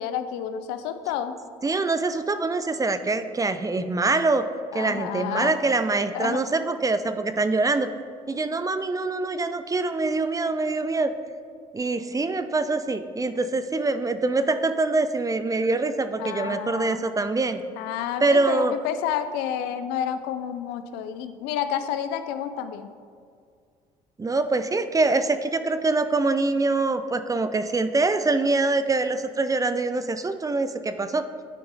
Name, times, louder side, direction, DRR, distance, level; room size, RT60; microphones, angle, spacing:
voice 1, 0.0-1.3 4.7-5.6 6.1-6.4 16.2-17.1 17.8-22.9, left 9 dB, 80° left, 10 dB, 0.5 m, -30 dB
voice 2, 1.6-4.4 4.7-7.9 8.3-11.1 11.7-17.6 18.2-18.7 24.2-31.3, right 3 dB, 20° right, 11 dB, 0.5 m, -24 dB
8.9 x 4.7 x 4.0 m, 2.2 s
supercardioid pair, 65°, 17 cm